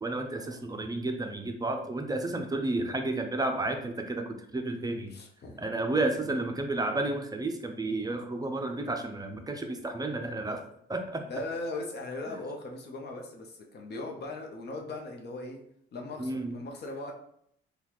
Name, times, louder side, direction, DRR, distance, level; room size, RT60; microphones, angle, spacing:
voice 1, 0.0-5.1 5.6-10.6 10.9-11.2 16.2-16.6, right 2 dB, 20° right, 5 dB, 0.5 m, -31 dB
voice 2, 5.1-5.6 6.1-6.2 11.3-15.6 15.9-17.1, left 2 dB, 55° left, 2 dB, 0.8 m, -39 dB
3.8 x 2.3 x 3.0 m, 0.70 s
cardioid pair, 90°, 20 cm